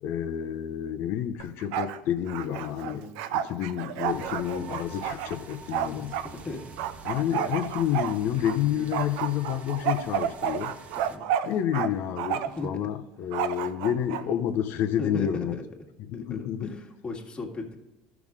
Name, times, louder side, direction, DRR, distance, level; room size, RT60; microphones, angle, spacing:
voice 1, 0.0-3.0 3.3-6.1 7.0-10.7 11.4-15.6 16.1-16.7, left 10 dB, 60° left, 0.8 m, -29 dB
Bark, 1.4-2.0 2.3-6.3 6.8-8.6 8.9-11.9 12.2-12.7 13.3-14.2, right 9 dB, 75° right, 0.6 m, -30 dB
voice 2, 2.8-3.1 5.7-6.7 8.6-8.9 11.0-11.3 12.4-12.8 13.4-13.5 14.2-14.4 15.0-15.6 16.1-17.8, left 2 dB, 25° left, 1.8 m, -38 dB
sound 1, 4.0-11.2, right 4 dB, 35° right, 1.2 m, -46 dB
13.0 x 6.0 x 3.7 m
supercardioid pair, 100°, 4 cm